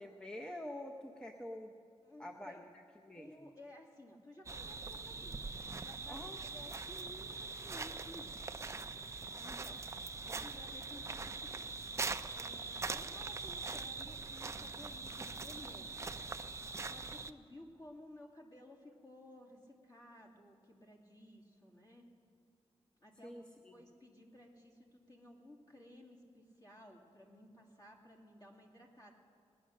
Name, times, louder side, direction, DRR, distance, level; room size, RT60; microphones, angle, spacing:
voice 1, 0.0-1.7 2.2-2.6 3.0-3.5 6.1-6.4 23.2-23.7, left 1 dB, 10° left, 3 dB, 0.8 m, -47 dB
voice 2, 2.0-2.6 3.1-5.4 5.7-8.4 9.3-11.7 12.3-16.1 16.8-22.1 23.0-23.4 23.7-29.1, left 1 dB, 35° left, 0 dB, 2.5 m, -56 dB
sound 1, 4.5-17.3, right 4 dB, 25° right, 0.5 m, -42 dB
20.0 x 10.0 x 6.5 m, 2.2 s
wide cardioid pair, 115°, 11 cm